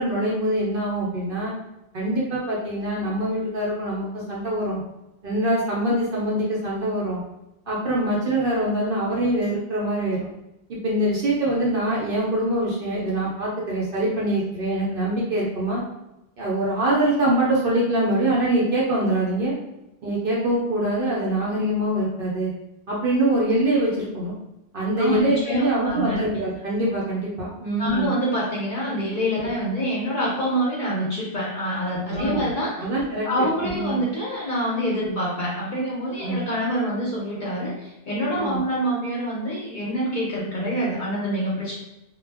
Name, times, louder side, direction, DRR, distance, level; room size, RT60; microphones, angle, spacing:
voice 1, 0.0-1.5 1.9-4.8 5.2-7.2 7.7-10.3 10.7-15.8 16.4-19.6 20.0-22.5 22.9-24.3 24.7-28.1 29.4-29.5 32.0-34.0 35.1-35.2 36.2-36.4 38.3-38.6, right 1 dB, 55° right, -5 dB, 0.7 m, -24 dB
voice 2, 25.0-26.2 27.8-32.9 33.2-41.7, equal, 45° left, -5 dB, 0.7 m, -26 dB
2.2 x 2.1 x 3.3 m, 0.93 s
omnidirectional pair, 1.3 m